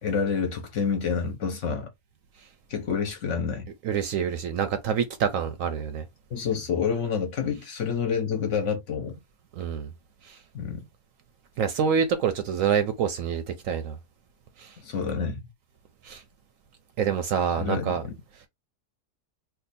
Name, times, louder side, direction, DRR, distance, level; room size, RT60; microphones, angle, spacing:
voice 1, 0.0-1.9 2.7-3.7 6.3-9.2 10.5-10.8 14.8-15.5 17.6-18.1, left 6 dB, 60° left, 0.9 m, -28 dB
voice 2, 3.8-6.0 9.6-9.9 10.2-10.4 11.6-14.0 14.6-14.7 16.0-16.2 17.0-18.0, right 7 dB, 70° right, 0.8 m, -26 dB
2.7 x 2.3 x 4.0 m
omnidirectional pair, 1.7 m